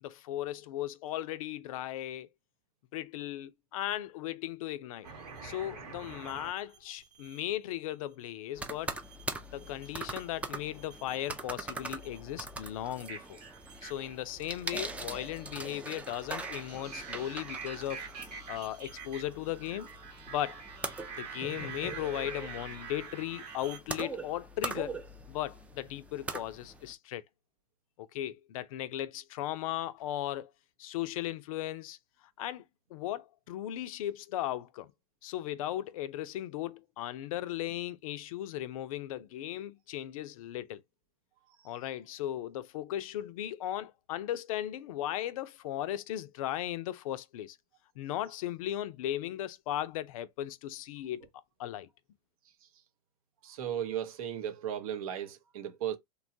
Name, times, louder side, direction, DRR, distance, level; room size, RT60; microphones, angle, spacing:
voice 1, 0.0-2.3 2.9-5.1 5.4-9.0 9.5-13.4 13.8-18.1 18.5-19.9 20.3-20.6 21.2-25.0 25.3-27.2 28.0-30.5 30.8-32.0 32.4-32.6 32.9-34.9 35.2-40.8 41.6-47.6 48.0-51.3 51.6-51.9, left 13 dB, 60° left, 0.4 m, -37 dB
sound 1, 5.0-7.4 8.9-10.2 10.6-11.4 11.8-23.8, right 5 dB, 85° right, 1.1 m, -47 dB
sound 2, 8.6-26.9, right 2 dB, 5° right, 0.4 m, -42 dB
voice 2, 53.4-56.0, right 10 dB, 65° right, 0.7 m, -36 dB
2.9 x 2.3 x 2.6 m
hypercardioid pair, 110°, 20 cm